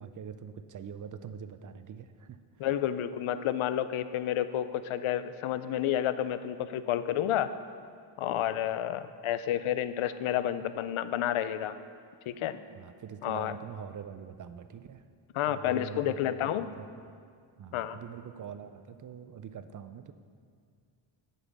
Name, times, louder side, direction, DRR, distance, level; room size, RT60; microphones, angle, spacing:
voice 1, 0.0-2.7 12.7-15.0 15.4-17.2 17.6-20.1, right 7 dB, 45° right, 10 dB, 0.4 m, -44 dB
voice 2, 2.6-7.5 8.2-11.8 12.3-12.6 13.2-13.6 15.3-16.7 17.7-18.0, left 11 dB, 85° left, 13 dB, 0.6 m, -30 dB
10.0 x 5.4 x 6.0 m, 2.2 s
wide cardioid pair, 135°, 48 cm